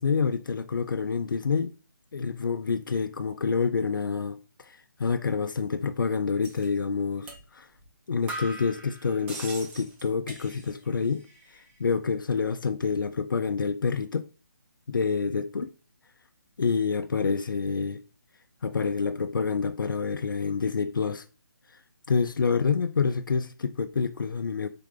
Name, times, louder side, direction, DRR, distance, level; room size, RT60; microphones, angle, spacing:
voice 1, 0.0-1.7 2.1-7.7 8.1-14.3 14.9-15.7 16.6-18.0 18.6-21.2 22.1-24.7, left 5 dB, 85° left, 0.5 m, -27 dB
sound 1, 6.4-6.7 7.3-7.4 7.8-7.9 8.3-10.9 11.2-11.8, right 2 dB, 10° right, 0.7 m, -41 dB
3.8 x 3.4 x 3.7 m
hypercardioid pair, 160°, 11 cm